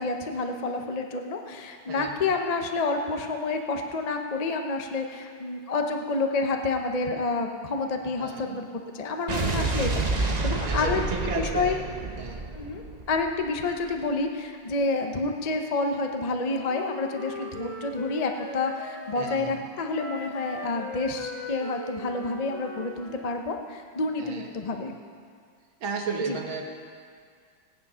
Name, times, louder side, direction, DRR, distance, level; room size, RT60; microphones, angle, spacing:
voice 1, 0.0-11.8 12.5-24.9 26.3-26.4, left 3 dB, 45° left, 4 dB, 0.4 m, -29 dB
voice 2, 8.2-8.6 9.4-9.7 10.1-11.8 12.2-12.4 19.2-19.6 24.2-24.5 25.8-26.6, right 4 dB, 90° right, 2 dB, 2.2 m, -34 dB
Explosion, 9.3-13.6, right 3 dB, 40° right, 0.6 m, -29 dB
Wind instrument woodwind instrument, 16.4-19.4 19.9-23.4, left 2 dB, 80° left, 2.4 m, -39 dB
17.0 x 10.0 x 5.7 m, 2.1 s
omnidirectional pair, 2.1 m